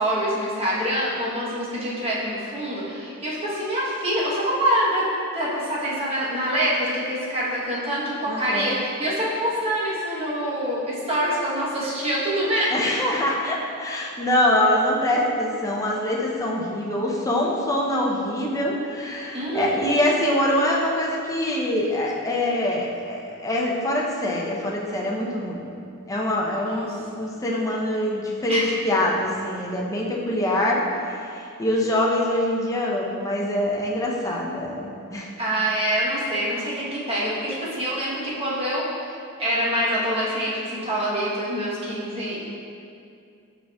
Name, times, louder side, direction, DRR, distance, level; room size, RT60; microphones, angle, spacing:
voice 1, 0.0-5.1 5.3-12.7 19.3-19.9 26.6-26.9 28.5-28.7 35.4-38.9 39.4-42.4, equal, 30° right, -7 dB, 0.9 m, -25 dB
voice 2, 8.3-8.7 12.7-25.6 26.1-35.3, left 1 dB, 15° left, -3 dB, 0.5 m, -24 dB
4.9 x 4.8 x 2.2 m, 2.4 s
head